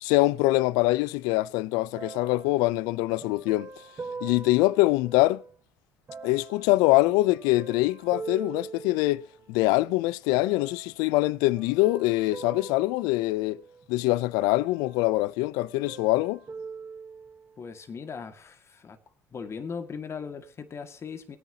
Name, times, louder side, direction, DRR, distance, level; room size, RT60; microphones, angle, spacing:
voice 1, 0.0-3.7 4.2-5.4 6.2-13.6 13.9-16.4, left 19 dB, 75° left, 0.4 m, -24 dB
sound 1, 2.0-5.6 6.1-9.6 10.3-10.9 11.6-13.9 14.3-15.4 15.6-17.7 18.3-18.4, right 4 dB, 35° right, 1.2 m, -43 dB
voice 2, 17.6-19.0 19.3-21.4, left 6 dB, 40° left, 1.9 m, -38 dB
19.5 x 9.5 x 2.8 m
hypercardioid pair, 60°, 7 cm